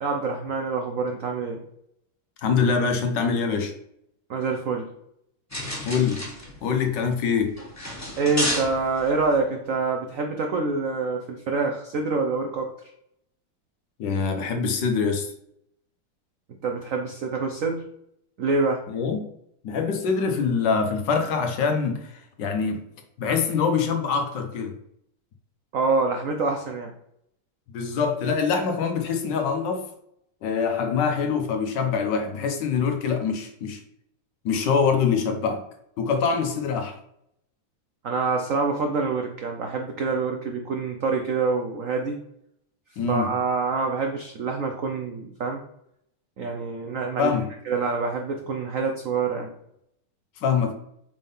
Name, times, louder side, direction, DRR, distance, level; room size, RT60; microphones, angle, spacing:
voice 1, 0.0-1.6 4.3-4.9 8.2-12.7 16.6-17.9 18.4-18.8 25.7-26.9 38.0-42.2 43.1-45.6 46.4-47.3 47.7-49.5, right 4 dB, 80° right, 3 dB, 0.7 m, -26 dB
voice 2, 2.4-3.7 5.8-6.2 6.6-7.6 14.0-15.3 18.9-19.2 19.6-22.8 23.2-24.7 27.7-29.8 30.4-33.8 34.4-35.6 36.0-37.0 43.0-43.3 47.2-47.5 50.4-50.7, left 5 dB, 65° left, 5 dB, 1.3 m, -24 dB
sound 1, 5.5-9.4, left 1 dB, 10° left, 1.3 m, -32 dB
5.2 x 3.7 x 5.3 m, 0.74 s
omnidirectional pair, 2.3 m